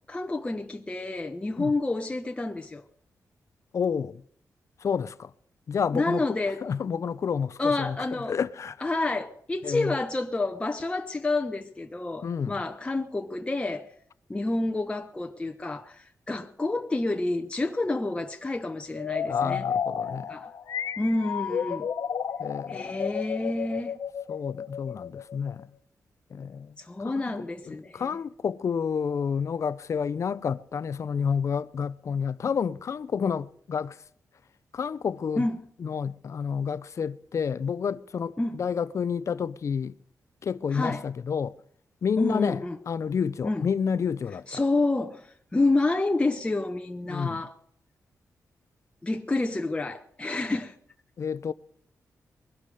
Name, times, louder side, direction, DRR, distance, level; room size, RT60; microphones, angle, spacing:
voice 1, 0.1-2.8 5.9-6.6 7.6-8.4 8.8-13.9 14.3-19.7 20.3-20.5 21.0-21.9 22.7-24.0 26.8-28.0 35.4-35.6 38.4-38.6 40.7-41.0 42.2-42.8 43.4-43.6 44.5-47.6 49.0-50.8, left 2 dB, 20° left, 1.1 m, -29 dB
voice 2, 3.7-4.2 4.8-5.3 5.7-8.9 9.6-10.0 12.2-12.6 19.3-20.3 22.4-23.0 24.3-25.7 26.3-26.7 27.0-27.3 27.7-34.0 34.7-35.4 35.8-39.9 40.4-41.5 42.0-42.6 42.9-44.6 47.1-47.4 51.2-51.5, left 6 dB, 60° left, 0.7 m, -30 dB
sound 1, 18.9-25.6, left 7 dB, 80° left, 1.4 m, -32 dB
21.5 x 12.0 x 5.0 m
cardioid pair, 90°, 6 cm